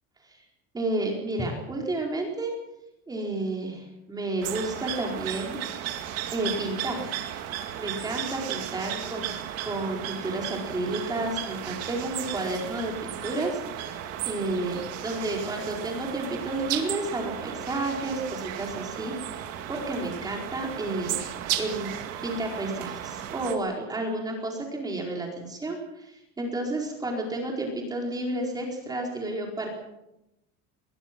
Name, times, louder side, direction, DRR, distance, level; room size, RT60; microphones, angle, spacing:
voice 1, 0.7-2.5 3.1-5.6 6.3-7.1 7.8-9.3 9.6-13.6 13.9-21.2 21.6-22.0 22.2-29.7, right 2 dB, 10° right, 0 dB, 4.6 m, -31 dB
sound 1, 4.4-23.6, right 11 dB, 50° right, 2.3 m, -35 dB
22.0 x 21.0 x 6.1 m, 0.89 s
cardioid pair, 180°, 33 cm